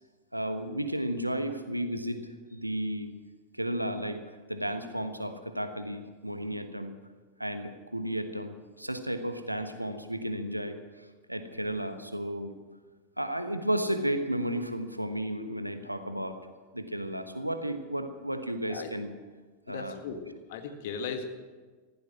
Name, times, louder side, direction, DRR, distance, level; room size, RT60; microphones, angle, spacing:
voice 1, 0.3-2.2 2.5-3.1 3.5-4.2 4.5-7.0 7.4-12.5 13.2-16.4 16.7-19.1 19.7-20.0, right 1 dB, 90° right, 9 dB, 1.2 m, -33 dB
voice 2, 19.7-21.3, left 5 dB, 55° left, 6 dB, 1.8 m, -37 dB
15.0 x 14.5 x 6.2 m, 1.4 s
figure-of-eight pair, 90°, 0 cm